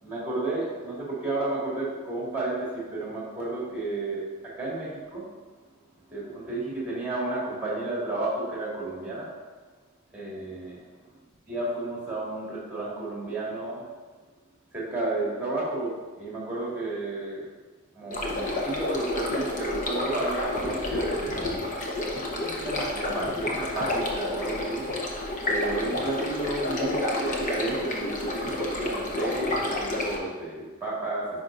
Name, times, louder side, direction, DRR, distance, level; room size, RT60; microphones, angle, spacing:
voice 1, 0.0-5.3 6.1-9.3 10.1-11.1 11.5-13.9 14.7-17.5 17.9-21.6 22.3-24.8 25.5-31.4, right 2 dB, 10° right, -6 dB, 2.1 m, -32 dB
sound 1, 18.1-30.2, left 2 dB, 35° left, 0.9 m, -30 dB
10.0 x 5.1 x 2.6 m, 1.3 s
head